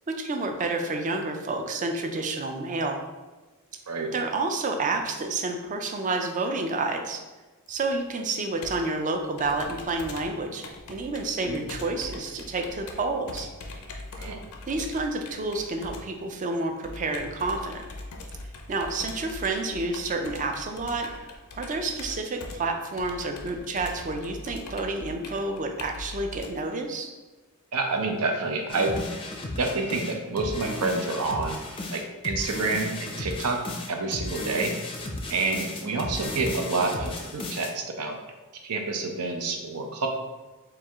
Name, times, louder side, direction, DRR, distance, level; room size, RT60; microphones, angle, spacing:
voice 1, 0.1-3.0 4.1-7.2 7.7-13.5 14.7-17.8 18.7-27.1, right 3 dB, 35° right, 5 dB, 0.4 m, -29 dB
Computer keyboard, 7.7-26.5, left 2 dB, 70° left, 0.5 m, -42 dB
voice 2, 27.7-28.9 29.6-31.6 31.9-33.6 33.9-34.7 35.3-38.2 38.6-40.1, right 3 dB, 85° right, 3 dB, 0.6 m, -28 dB
sound 1, 28.7-37.7, left 2 dB, 25° left, 0.5 m, -35 dB
4.5 x 2.3 x 3.5 m, 1.2 s
head